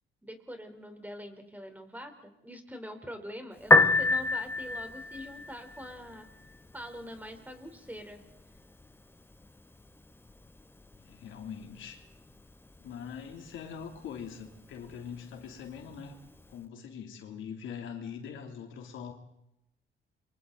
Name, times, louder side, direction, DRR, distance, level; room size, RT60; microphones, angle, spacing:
voice 1, 0.2-6.3 6.7-8.2, equal, 10° right, 6 dB, 4.0 m, -44 dB
Piano, 3.6-16.6, left 2 dB, 10° left, 1.4 m, -32 dB
voice 2, 11.0-12.0 12.8-16.2 16.5-19.1, left 7 dB, 80° left, 4 dB, 3.2 m, -42 dB
29.5 x 24.0 x 4.1 m, 0.84 s
cardioid pair, 90°, 20 cm